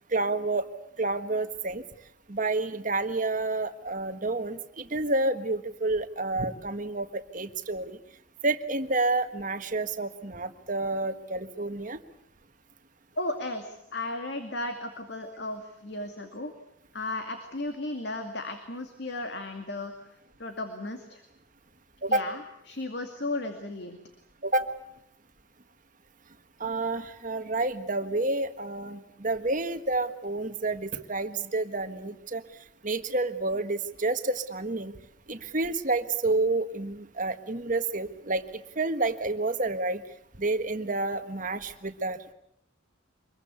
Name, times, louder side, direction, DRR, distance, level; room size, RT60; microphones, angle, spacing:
voice 1, 0.1-0.6 1.0-1.8 2.3-8.0 8.4-12.0 22.0-22.3 24.4-24.7 26.6-32.4 32.8-34.9 35.3-38.4 38.8-40.0 40.4-42.2, right 2 dB, 40° right, 9 dB, 1.5 m, -29 dB
voice 2, 13.2-16.5 16.9-19.9 20.4-21.2 22.1-22.4 22.7-24.0, left 2 dB, 55° left, 6 dB, 2.4 m, -35 dB
25.0 x 22.0 x 8.4 m, 0.75 s
head